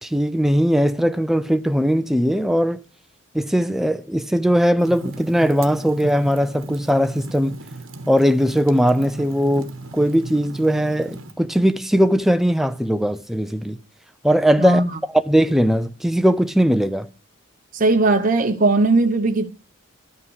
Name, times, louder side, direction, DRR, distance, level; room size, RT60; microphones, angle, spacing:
voice 1, 0.0-2.8 3.3-7.6 8.1-13.8 14.2-14.8 15.1-17.1, equal, ahead, 0.5 m, -19 dB
Fire, 4.8-11.3, right 2 dB, 75° right, 1.2 m, -36 dB
voice 2, 14.6-14.9 17.7-19.5, right 2 dB, 40° right, 1.0 m, -18 dB
12.0 x 5.7 x 4.8 m
head